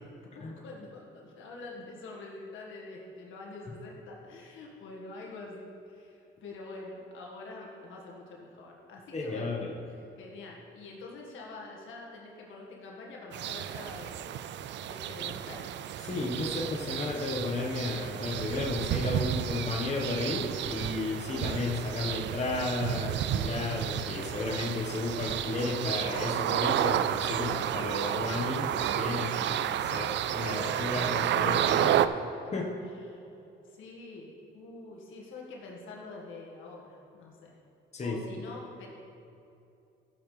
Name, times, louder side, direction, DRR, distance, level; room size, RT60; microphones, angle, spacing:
voice 1, 0.3-9.6 9.9-14.5 14.8-15.7 29.4-29.7 30.3-30.9 33.1-33.2 33.6-37.6 38.0-38.9, left 3 dB, 80° left, -2 dB, 1.8 m, -46 dB
voice 2, 9.1-9.7 16.0-32.0 32.5-32.7 37.9-38.4, left 2 dB, 35° left, -1 dB, 1.4 m, -33 dB
sound 1, 13.3-32.1, right 10 dB, 65° right, 0.4 m, -31 dB
14.5 x 7.2 x 3.4 m, 2.7 s
cardioid pair, 90°, 20 cm